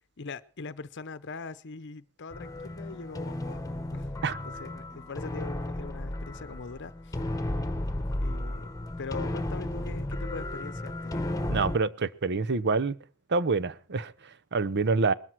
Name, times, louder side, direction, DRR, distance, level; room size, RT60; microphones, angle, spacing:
voice 1, 0.0-3.6 3.9-4.1 4.6-7.2 8.2-8.7 9.0-11.3, left 4 dB, 55° left, 0.8 m, -41 dB
sound 1, 2.3-11.8, left 1 dB, 15° left, 1.3 m, -34 dB
voice 2, 11.5-13.0 13.3-15.1, right 4 dB, 55° right, 0.8 m, -27 dB
20.5 x 13.5 x 4.6 m
head